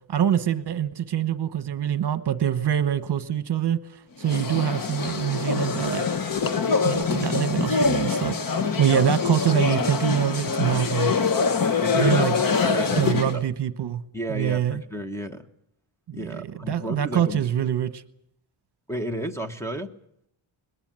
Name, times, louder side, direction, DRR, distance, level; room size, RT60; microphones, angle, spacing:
voice 1, 0.1-3.8 4.2-6.1 6.8-11.1 12.0-12.4 12.9-14.0 14.3-14.8 16.1-18.0, right 9 dB, 55° right, 1.1 m, -25 dB
sound 1, 4.2-13.4, left 5 dB, 45° left, 1.0 m, -24 dB
voice 2, 11.8-13.5 14.1-15.5 16.1-17.5 18.9-19.9, right 1 dB, 5° left, 1.1 m, -33 dB
21.5 x 19.5 x 8.9 m
wide cardioid pair, 175°, 47 cm